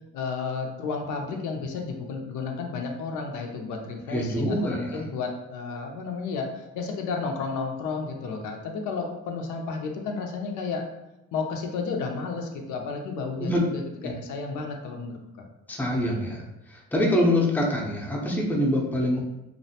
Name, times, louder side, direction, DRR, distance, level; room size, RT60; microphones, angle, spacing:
voice 1, 0.1-10.8 11.3-15.5, left 4 dB, 85° left, 2 dB, 0.5 m, -32 dB
voice 2, 4.1-5.0 13.4-13.6 14.0-14.1 15.7-16.4 16.7-19.2, left 1 dB, 5° left, -2 dB, 0.5 m, -25 dB
2.5 x 2.1 x 2.7 m, 0.94 s
cardioid pair, 90°, 30 cm